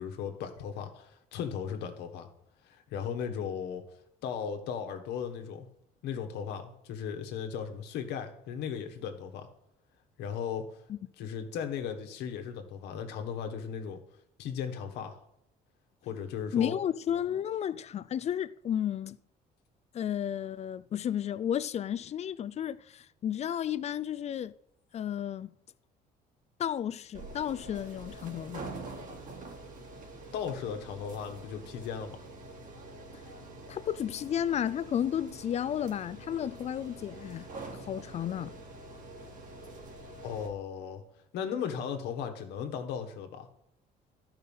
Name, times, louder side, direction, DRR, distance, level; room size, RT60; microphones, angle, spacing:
voice 1, 0.0-2.3 2.6-3.8 4.2-5.7 6.0-9.5 10.2-10.7 11.2-14.0 14.4-15.2 16.0-16.8 30.3-32.2 40.2-41.0 41.3-43.5, left 7 dB, 85° left, 1.4 m, -36 dB
voice 2, 16.5-19.2 19.9-24.5 24.9-25.5 26.6-28.7 33.7-38.6, left 9 dB, 40° left, 0.4 m, -33 dB
sound 1, 27.1-40.5, right 2 dB, 50° right, 2.2 m, -46 dB
12.0 x 5.6 x 5.5 m
cardioid pair, 110°, 17 cm